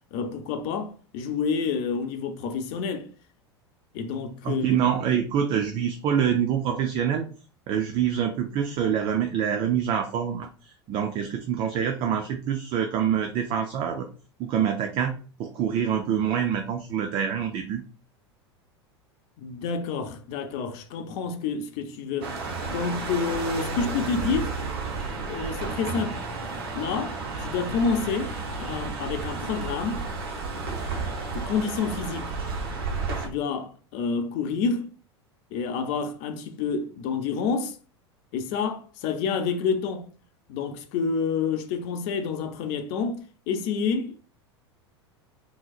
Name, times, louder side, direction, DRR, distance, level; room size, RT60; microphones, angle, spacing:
voice 1, 0.1-3.1 3.9-4.6 19.4-24.5 25.3-26.2 26.7-30.1 31.3-32.3 33.2-34.9 35.5-37.8 38.3-40.1 40.5-44.2, left 5 dB, 50° left, 0.6 m, -29 dB
voice 2, 4.4-7.3 7.7-10.5 10.9-14.1 14.4-15.1 15.4-17.8, right 8 dB, 35° right, 0.5 m, -25 dB
sound 1, 22.2-33.3, right 3 dB, 60° right, 0.9 m, -32 dB
3.8 x 3.1 x 2.4 m
figure-of-eight pair, 80°, 14 cm